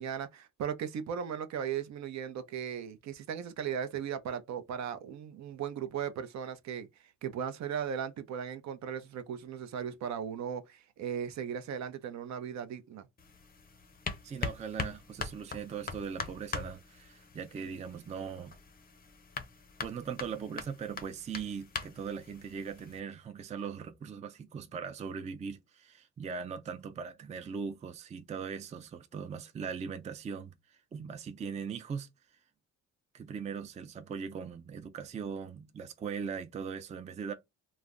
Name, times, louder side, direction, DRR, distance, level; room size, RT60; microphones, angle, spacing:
voice 1, 0.0-13.1, right 8 dB, 65° right, 0.6 m, -37 dB
sound 1, 13.2-23.0, left 5 dB, 30° left, 0.5 m, -42 dB
voice 2, 14.2-18.6 19.8-32.1 33.1-37.3, right 6 dB, 25° right, 0.4 m, -40 dB
2.4 x 2.1 x 3.4 m
cardioid pair, 90°, 30 cm